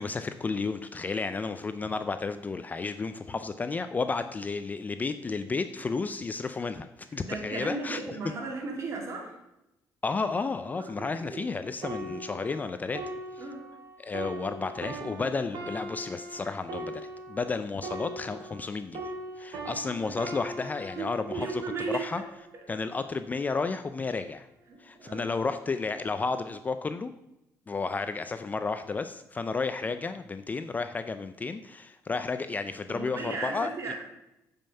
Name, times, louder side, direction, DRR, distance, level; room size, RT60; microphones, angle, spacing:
voice 1, 0.0-8.2 10.0-13.0 13.3-13.5 14.0-17.0 17.3-21.6 21.9-22.2 22.7-24.5 24.8-27.1 27.7-33.9, left 4 dB, 25° left, 10 dB, 0.4 m, -32 dB
voice 2, 7.2-9.4 10.8-11.5 12.1-12.2 13.4-13.6 21.0-22.0 24.7-25.3 32.9-33.9, right 4 dB, 45° right, 0 dB, 2.6 m, -36 dB
sound 1, 11.8-18.7 18.9-22.5 23.2-23.4, right 1 dB, 75° right, 2.5 m, -40 dB
8.8 x 5.4 x 5.5 m, 0.89 s
cardioid pair, 105°, 7 cm